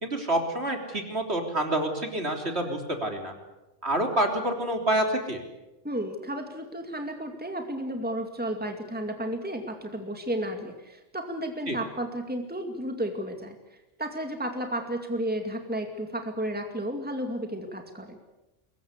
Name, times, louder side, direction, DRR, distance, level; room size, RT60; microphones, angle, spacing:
voice 1, 0.0-3.3 3.8-5.4 11.7-11.8, right 1 dB, 60° right, 3 dB, 3.9 m, -27 dB
voice 2, 5.8-13.6 14.0-18.2, right 1 dB, 5° right, 4 dB, 2.4 m, -33 dB
24.0 x 21.5 x 8.3 m, 1.0 s
omnidirectional pair, 1.3 m